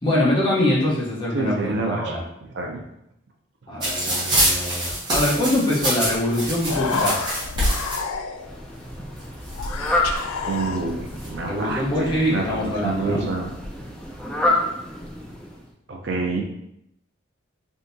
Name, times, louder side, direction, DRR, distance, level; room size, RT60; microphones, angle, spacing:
voice 1, 0.0-2.2 3.7-7.2 11.5-13.3, left 1 dB, 25° left, -5 dB, 0.8 m, -23 dB
voice 2, 1.3-2.8 10.5-13.5 15.9-16.4, right 3 dB, 55° right, 2 dB, 0.4 m, -28 dB
sound 1, 3.8-8.0 8.9-9.0 9.2-10.2 10.9-11.3, right 1 dB, 20° right, 1.1 m, -25 dB
Human voice, 6.1-6.3 6.5-8.6 9.5-11.2, left 3 dB, 85° left, 0.3 m, -27 dB
Fowl, 8.3-15.7, left 1 dB, 5° left, 0.3 m, -29 dB
3.6 x 2.7 x 2.6 m, 0.79 s
head